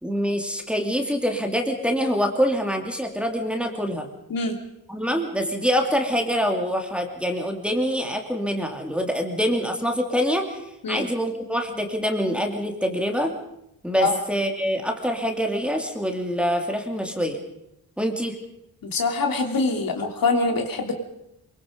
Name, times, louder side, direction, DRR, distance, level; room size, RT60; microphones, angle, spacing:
voice 1, 0.0-4.1 4.9-13.3 13.8-17.4 18.0-18.4, equal, 5° right, 2 dB, 2.8 m, -25 dB
voice 2, 18.8-20.9, left 3 dB, 60° left, 4 dB, 3.0 m, -24 dB
23.5 x 23.0 x 5.3 m, 0.80 s
cardioid pair, 100°, 40 cm